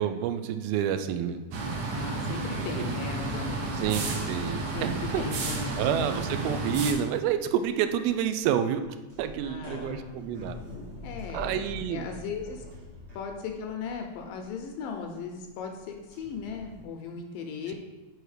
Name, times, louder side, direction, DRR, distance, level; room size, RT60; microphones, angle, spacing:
voice 1, 0.0-1.4 2.5-2.7 3.8-5.2 5.8-8.8 9.2-10.6 11.3-12.0, right 9 dB, 90° right, 9 dB, 2.4 m, -29 dB
sound 1, 1.5-6.9, right 3 dB, 70° right, 1.7 m, -31 dB
voice 2, 1.9-4.1 4.7-6.1 9.4-10.2 11.0-12.6 13.1-17.7, left 5 dB, 80° left, 3 dB, 2.1 m, -38 dB
sound 2, 3.2-7.0 7.2-16.8, left 2 dB, 55° right, 1.1 m, -46 dB
6.3 x 4.6 x 4.8 m, 1.2 s
omnidirectional pair, 4.2 m